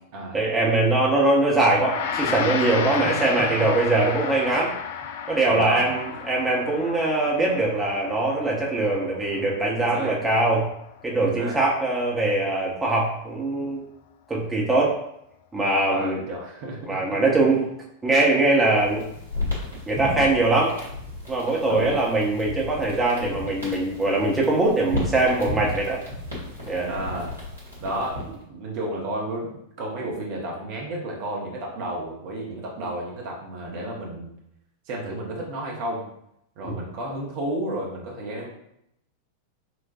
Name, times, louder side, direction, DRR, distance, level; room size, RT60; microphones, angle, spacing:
voice 1, 0.3-4.7 5.3-10.7 11.0-13.8 14.3-15.0 15.5-16.2 16.9-17.6 18.0-19.0 19.9-20.7 21.3-26.0 26.7-26.9 36.7-36.8, right 2 dB, 10° right, -3 dB, 1.0 m, -22 dB
Gong, 1.7-11.2, left 7 dB, 55° left, 0.3 m, -33 dB
voice 2, 2.7-3.5 5.5-5.9 9.8-10.2 11.2-11.6 15.9-17.0 21.7-22.0 26.8-27.3 27.8-34.3 34.9-36.1 36.6-38.5, right 1 dB, 45° right, -2 dB, 1.0 m, -32 dB
sound 1, 18.6-28.4, left 1 dB, 80° right, 1.6 m, -34 dB
6.0 x 2.5 x 2.6 m, 0.76 s
figure-of-eight pair, 90°, 0 cm